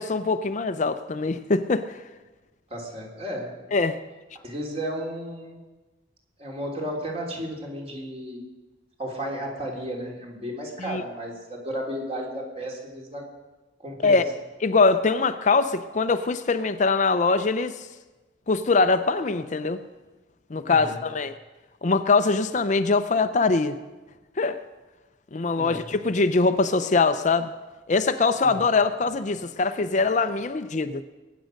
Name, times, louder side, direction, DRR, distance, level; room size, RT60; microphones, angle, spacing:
voice 1, 0.0-2.0 3.7-4.0 10.8-11.0 14.0-14.2 14.6-17.9 18.5-19.8 20.5-21.4 21.8-23.8 24.4-24.6 25.3-27.5 27.9-31.0, left 4 dB, 40° left, 10 dB, 0.6 m, -22 dB
voice 2, 2.7-3.5 4.4-5.6 6.4-8.4 9.0-13.2 13.8-14.2 20.6-21.0 25.6-25.8 28.4-28.5, equal, 35° right, 0 dB, 3.5 m, -33 dB
22.0 x 9.3 x 6.5 m, 1.2 s
head